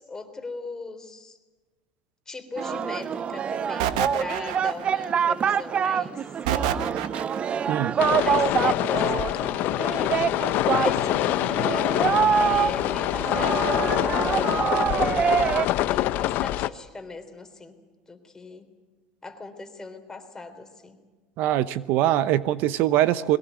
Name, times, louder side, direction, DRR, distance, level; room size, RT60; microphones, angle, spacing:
voice 1, 0.0-1.4 2.3-6.3 8.1-9.9 10.6-14.3 15.9-17.8 18.1-18.7 19.2-21.0, left 3 dB, 15° left, 5 dB, 3.6 m, -39 dB
Singing, 2.6-15.7, right 7 dB, 35° right, 0.6 m, -26 dB
sound 1, 3.8-5.0 6.5-7.6, right 10 dB, 85° right, 1.2 m, -28 dB
sound 2, 8.0-16.7, left 14 dB, 60° left, 0.8 m, -25 dB
voice 2, 21.4-23.4, right 13 dB, 65° right, 16 dB, 0.8 m, -22 dB
22.0 x 18.5 x 9.4 m, 1.2 s
supercardioid pair, 105°, 4 cm